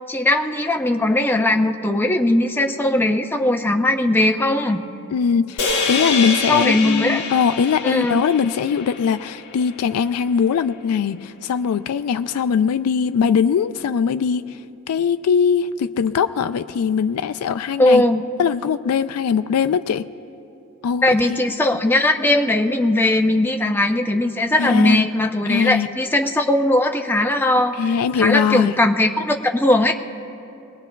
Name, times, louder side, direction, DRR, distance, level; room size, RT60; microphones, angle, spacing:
voice 1, 0.1-4.8 6.5-7.2 7.8-8.2 17.8-18.2 21.0-27.7 28.1-29.9, left 1 dB, 10° left, 4 dB, 0.5 m, -19 dB
voice 2, 5.1-14.6 14.9-18.0 18.4-20.1 20.8-21.0 21.3-21.4 24.6-25.0 25.5-25.9 27.8-28.8, left 6 dB, 85° left, 10 dB, 0.3 m, -21 dB
sound 1, 5.6-10.0, left 4 dB, 55° left, 1.3 m, -26 dB
22.5 x 19.5 x 2.3 m, 2.7 s
head